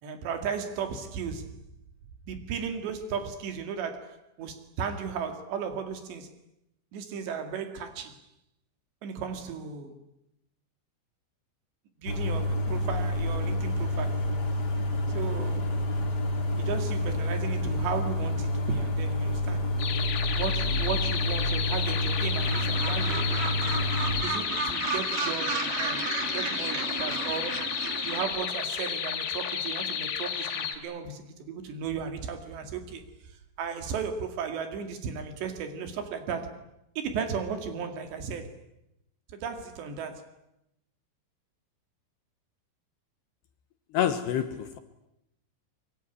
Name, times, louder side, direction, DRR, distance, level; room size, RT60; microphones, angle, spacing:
voice 1, 0.0-1.6 2.3-6.3 6.9-8.2 9.0-9.9 12.0-14.4 15.1-15.7 16.6-19.7 20.3-23.8 24.2-27.7 28.0-36.6 37.0-38.6 39.3-40.3, right 6 dB, 65° right, 4.1 m, -35 dB
sound 1, 12.1-24.2, left 1 dB, 35° left, 1.7 m, -28 dB
sound 2, 19.8-30.8, left 7 dB, 90° left, 5.7 m, -32 dB
Gull seagull, 22.4-28.2, right 5 dB, 45° right, 4.1 m, -34 dB
voice 2, 43.9-44.8, left 9 dB, 70° left, 2.9 m, -27 dB
24.0 x 23.5 x 9.9 m
omnidirectional pair, 5.8 m